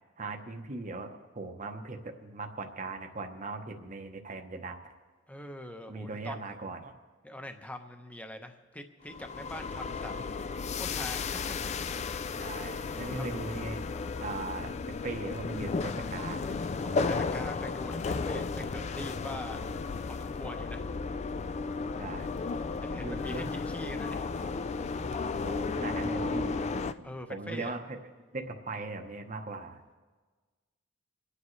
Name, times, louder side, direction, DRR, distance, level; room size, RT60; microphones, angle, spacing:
voice 1, 0.2-4.8 5.9-6.9 12.3-13.8 14.2-16.4 22.0-22.4 23.0-23.5 25.4-28.0 28.3-29.8, right 3 dB, 40° right, 4 dB, 1.0 m, -39 dB
voice 2, 5.3-6.4 7.2-10.3 10.8-11.6 16.8-19.7 20.0-20.9 22.8-24.6 27.0-27.7, left 1 dB, 10° left, 6 dB, 0.8 m, -43 dB
sound 1, 9.1-26.9, left 4 dB, 35° left, 0.3 m, -34 dB
28.5 x 9.8 x 3.2 m, 1.4 s
head